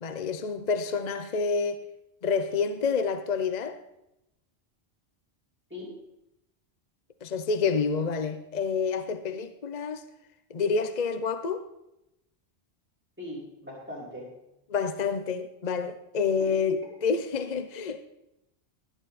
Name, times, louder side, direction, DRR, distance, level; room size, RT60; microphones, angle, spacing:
voice 1, 0.0-1.8 2.2-3.8 7.2-10.0 10.5-11.7 14.7-18.0, left 5 dB, 45° left, 0.8 m, -28 dB
voice 2, 13.2-14.3 16.4-16.5, left 1 dB, 10° right, 5.6 m, -40 dB
17.5 x 11.5 x 4.2 m
omnidirectional pair, 1.1 m